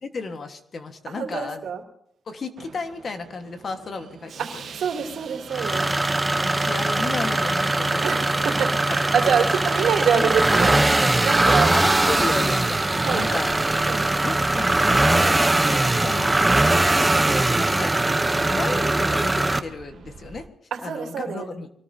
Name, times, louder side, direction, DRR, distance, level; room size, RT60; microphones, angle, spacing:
voice 1, 0.0-1.6 2.3-4.7 6.4-8.3 8.9-9.0 10.1-10.3 11.5-13.5 14.2-15.4 16.0-16.6 17.5-17.9 18.5-20.5 20.8-21.7, left 4 dB, 40° left, 7 dB, 1.4 m, -33 dB
voice 2, 1.1-1.8 4.4-4.5 4.7-5.9 8.0-11.7 13.0-13.3 13.6-14.1 20.7-21.5, right 7 dB, 70° right, 2 dB, 2.7 m, -26 dB
Subway metro underground, 2.6-20.5, right 6 dB, 55° right, 1.1 m, -40 dB
sound 1, 5.5-19.6, right 2 dB, 10° right, 0.8 m, -21 dB
25.5 x 19.0 x 2.8 m, 0.68 s
cardioid pair, 135°, 0 cm